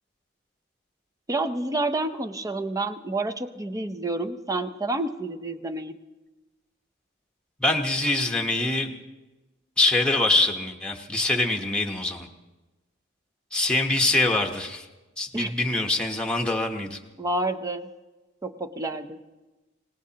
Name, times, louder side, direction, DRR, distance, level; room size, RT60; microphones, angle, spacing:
voice 1, 1.3-6.0 15.3-15.5 17.2-17.9 18.4-19.2, right 2 dB, 15° right, 8 dB, 0.7 m, -29 dB
voice 2, 7.6-8.9 9.8-12.3 13.5-14.9 15.2-17.0, left 2 dB, 5° left, 1 dB, 1.0 m, -24 dB
26.0 x 18.5 x 2.9 m, 1.1 s
head